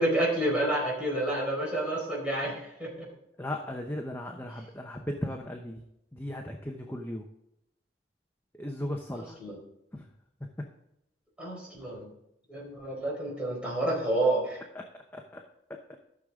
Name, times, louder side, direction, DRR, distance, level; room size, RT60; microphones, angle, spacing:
voice 1, 0.0-3.1 9.1-9.6 11.4-12.1 12.5-14.6, right 1 dB, 5° right, -5 dB, 4.4 m, -29 dB
voice 2, 3.4-5.8 6.1-7.3 8.6-9.4 9.9-10.0 10.6-10.7 14.7-14.8 15.1-15.4 15.7-15.8, left 1 dB, 10° left, 2 dB, 0.7 m, -36 dB
13.5 x 6.6 x 3.7 m, 0.82 s
head